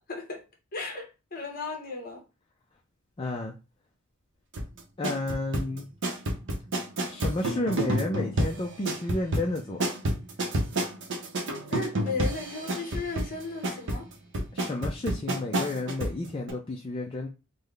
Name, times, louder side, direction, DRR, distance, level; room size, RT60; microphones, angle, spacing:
voice 1, 0.1-0.4 0.7-2.2 11.7-14.0, left 3 dB, 40° left, 1.0 m, -35 dB
voice 2, 3.2-3.5 5.0-5.9 7.1-9.8 14.5-17.3, left 2 dB, 25° left, 0.4 m, -31 dB
sound 1, 4.5-16.2 16.5-16.6, right 1 dB, 55° right, 0.7 m, -30 dB
3.8 x 2.1 x 3.2 m
head